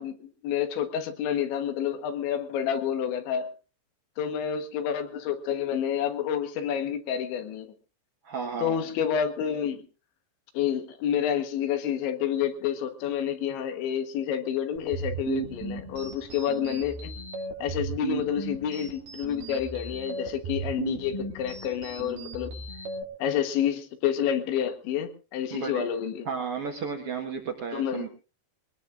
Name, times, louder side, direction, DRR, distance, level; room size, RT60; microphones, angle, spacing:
voice 1, 0.0-3.5 4.2-7.7 8.6-9.8 10.6-17.2 17.6-22.5 23.2-26.3 27.7-28.1, left 9 dB, 85° left, 3.7 m, -29 dB
voice 2, 8.2-8.8 25.5-25.9 26.2-28.1, right 6 dB, 85° right, 1.2 m, -33 dB
sound 1, 14.8-23.0, right 5 dB, 60° right, 4.5 m, -36 dB
23.0 x 19.0 x 2.5 m
omnidirectional pair, 5.2 m